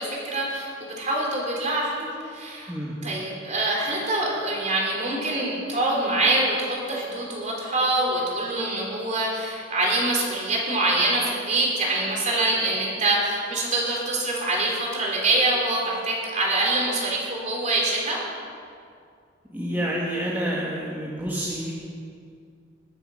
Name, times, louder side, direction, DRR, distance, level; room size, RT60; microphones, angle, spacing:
voice 1, 0.0-2.7 3.0-18.2, right 2 dB, 40° right, -2 dB, 3.7 m, -25 dB
voice 2, 19.5-21.7, equal, 10° right, -5 dB, 1.6 m, -28 dB
21.5 x 7.7 x 6.4 m, 2.3 s
head